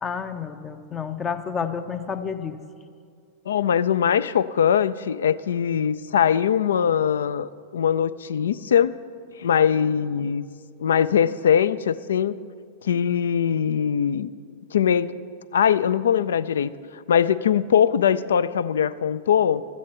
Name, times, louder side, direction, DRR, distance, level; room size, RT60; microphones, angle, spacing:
voice 1, 0.0-2.6, left 6 dB, 25° left, 10 dB, 0.6 m, -30 dB
voice 2, 3.5-9.0 9.4-10.5 10.8-12.4 12.8-14.3 14.7-15.1 15.5-16.7 17.1-19.6, left 8 dB, 65° left, 17 dB, 0.3 m, -21 dB
13.5 x 8.5 x 4.3 m, 2.2 s
figure-of-eight pair, 90°, 0 cm